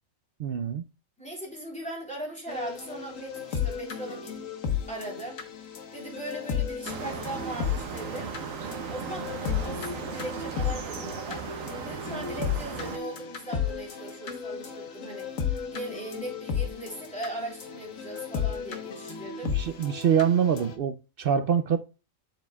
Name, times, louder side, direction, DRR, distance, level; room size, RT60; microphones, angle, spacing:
voice 1, 0.4-0.8 19.4-21.8, right 8 dB, 60° right, 0.6 m, -25 dB
voice 2, 1.2-4.4 4.9-5.4 5.9-8.3 8.6-11.4 11.8-19.5, right 1 dB, 5° left, 3.3 m, -39 dB
sound 1, 2.5-20.8, left 7 dB, 80° left, 1.5 m, -34 dB
sound 2, 6.8-13.0, right 6 dB, 85° right, 1.2 m, -37 dB
7.7 x 7.0 x 2.3 m
omnidirectional pair, 1.3 m